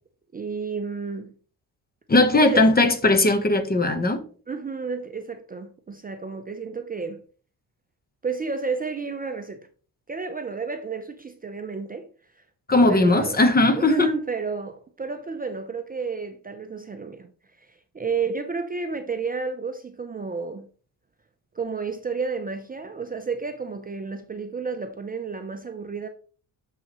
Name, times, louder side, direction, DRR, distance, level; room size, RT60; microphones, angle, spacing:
voice 1, 0.3-1.3 2.4-2.7 4.5-7.2 8.2-9.7 10.1-12.1 12.4-12.5 12.9-13.4 13.7-17.3 17.6-20.7 21.5-26.1, right 5 dB, 20° right, 0.5 m, -31 dB
voice 2, 2.1-4.2 12.7-14.1, left 2 dB, 25° left, 1.0 m, -18 dB
6.6 x 5.6 x 3.0 m
cardioid pair, 90°, 39 cm